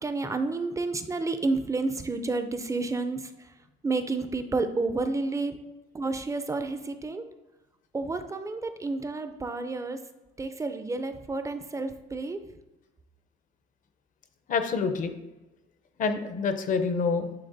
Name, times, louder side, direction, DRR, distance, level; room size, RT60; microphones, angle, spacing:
voice 1, 0.0-3.3 3.8-5.6 5.9-7.2 7.9-10.0 10.4-12.4, right 3 dB, 20° right, 9 dB, 0.4 m, -30 dB
voice 2, 14.5-15.2 16.0-17.3, left 5 dB, 50° left, 8 dB, 0.7 m, -27 dB
9.8 x 3.7 x 2.6 m, 1.0 s
cardioid pair, 110°, 17 cm